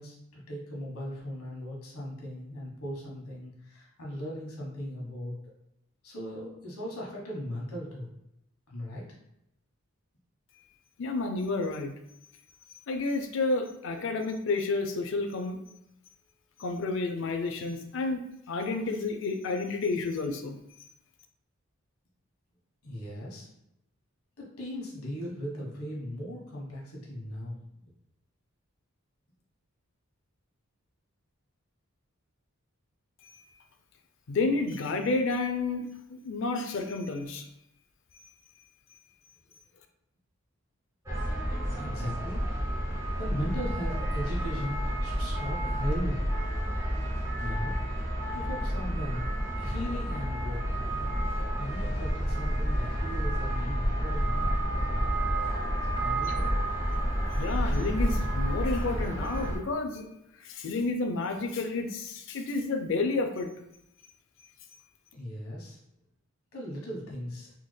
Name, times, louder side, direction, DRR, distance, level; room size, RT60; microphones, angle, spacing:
voice 1, 0.0-5.3 6.0-8.1 8.7-9.1 22.8-23.5 24.4-27.6 41.8-42.4 43.2-46.2 47.4-47.8 48.3-49.3 49.6-50.6 51.6-54.5 55.9-56.5 65.1-65.8 66.5-67.5, equal, 80° left, -3 dB, 1.1 m, -38 dB
voice 2, 11.0-11.9 12.9-15.6 16.6-18.2 18.5-20.6 33.2-33.4 34.3-37.4 56.3-56.4 57.4-60.0 60.4-63.5, left 3 dB, 55° left, 5 dB, 0.4 m, -30 dB
sound 1, 41.1-59.6, equal, 15° right, 0.8 m, -30 dB
3.5 x 3.2 x 2.2 m, 0.82 s
head